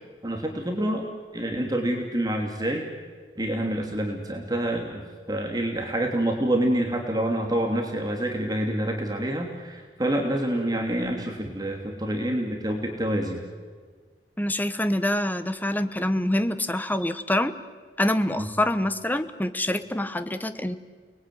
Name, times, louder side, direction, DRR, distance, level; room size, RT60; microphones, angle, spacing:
voice 1, 0.2-1.0 1.3-2.8 3.4-5.0 5.3-13.4 18.4-18.5, right 1 dB, 25° right, 2 dB, 2.9 m, -27 dB
voice 2, 14.4-17.6 18.0-20.8, left 1 dB, 10° left, 10 dB, 1.2 m, -26 dB
30.0 x 21.0 x 9.5 m, 1.6 s
head